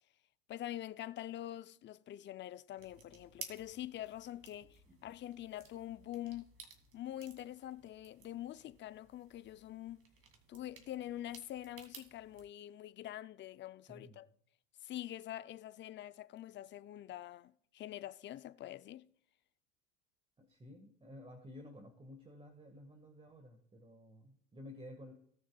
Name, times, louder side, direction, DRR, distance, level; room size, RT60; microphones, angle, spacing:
voice 1, 0.5-6.5 6.9-10.0 10.5-14.3 14.8-19.1, left 13 dB, 35° left, 0.6 m, -45 dB
sound 1, 2.8-12.5, right 5 dB, 40° right, 2.6 m, -56 dB
voice 2, 13.9-14.2 20.4-25.1, left 1 dB, 15° right, 1.8 m, -53 dB
18.5 x 6.4 x 2.4 m
hypercardioid pair, 90°, 33 cm